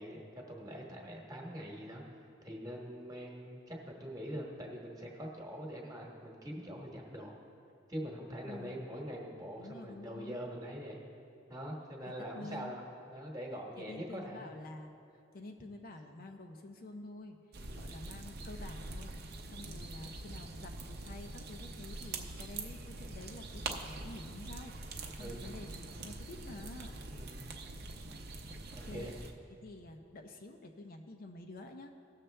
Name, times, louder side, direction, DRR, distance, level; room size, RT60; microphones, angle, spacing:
voice 1, 0.0-2.0 2.4-7.4 7.9-11.0 11.5-14.5 17.6-17.9 25.2-25.4 27.1-27.5 28.7-29.2, equal, 20° right, -1 dB, 1.3 m, -43 dB
voice 2, 8.4-8.8 9.6-10.4 12.1-12.8 13.8-15.0 15.3-17.4 17.7-19.2 19.5-24.7 25.1-27.0 28.5-29.1 29.6-31.9, left 2 dB, 50° left, 4 dB, 0.6 m, -49 dB
sound 1, 17.5-29.3, right 2 dB, 55° right, 0.7 m, -44 dB
16.5 x 6.5 x 3.3 m, 2.6 s
head